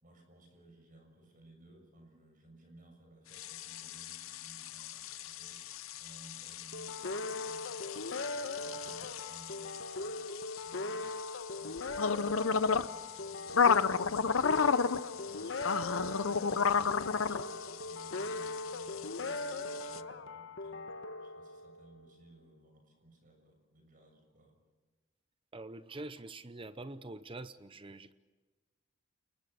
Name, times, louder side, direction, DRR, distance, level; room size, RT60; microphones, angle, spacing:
voice 1, 0.0-5.6 6.0-8.1 8.6-11.1 11.5-12.4 12.8-14.5 14.8-20.9 21.2-24.6, right 2 dB, 40° right, 5 dB, 6.8 m, -59 dB
sound 1, 3.3-20.0, left 5 dB, 80° left, 0.8 m, -33 dB
sound 2, 6.7-22.1, left 2 dB, 60° left, 1.3 m, -40 dB
voice 2, 25.5-28.1, right 2 dB, 25° right, 13 dB, 0.7 m, -45 dB
29.5 x 20.0 x 7.0 m, 1.3 s
head